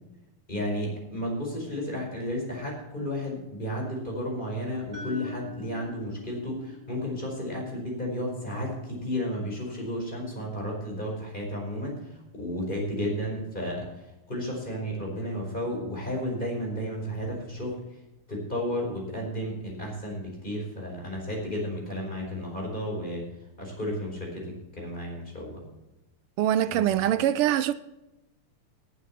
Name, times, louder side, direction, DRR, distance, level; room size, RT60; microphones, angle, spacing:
voice 1, 0.5-13.9 14.3-17.8 18.3-23.2 23.6-25.6 26.7-27.1, equal, 20° left, 5.0 m, -33 dB
sound 1, 4.9-9.0, left 6 dB, 50° right, 3.7 m, -45 dB
voice 2, 26.4-27.7, right 11 dB, 85° right, 1.5 m, -23 dB
17.5 x 8.4 x 4.3 m
omnidirectional pair, 2.4 m